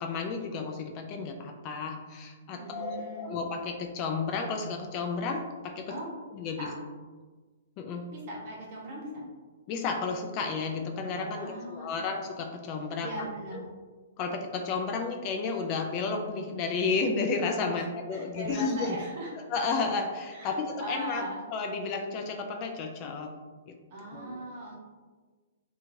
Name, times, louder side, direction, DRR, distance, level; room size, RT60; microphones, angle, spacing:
voice 1, 0.0-5.9 6.3-6.7 7.8-8.0 9.7-13.1 13.5-13.6 14.2-19.0 19.5-21.2 21.5-23.3 23.7-23.8 24.1-24.4, left 4 dB, 35° left, 4 dB, 0.3 m, -32 dB
voice 2, 2.4-3.3 5.9-6.1 6.6-6.7 8.1-9.2 11.3-12.0 13.0-13.7 17.7-17.8 18.1-19.3 20.3-21.4 23.9-24.8, right 1 dB, 50° right, -3 dB, 0.9 m, -39 dB
2.8 x 2.4 x 2.6 m, 1.4 s
hypercardioid pair, 135°, 0 cm